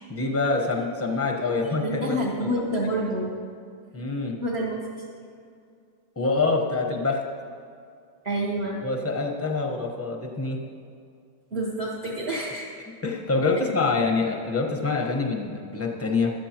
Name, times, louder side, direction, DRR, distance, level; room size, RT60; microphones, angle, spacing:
voice 1, 0.1-2.5 3.9-4.4 6.2-7.2 8.8-10.6 13.0-16.3, left 3 dB, 10° left, 1 dB, 0.8 m, -26 dB
voice 2, 1.5-3.3 4.4-5.1 8.2-8.8 11.5-12.7, right 1 dB, 40° right, -4 dB, 1.4 m, -28 dB
15.5 x 12.0 x 3.0 m, 2.3 s
omnidirectional pair, 2.0 m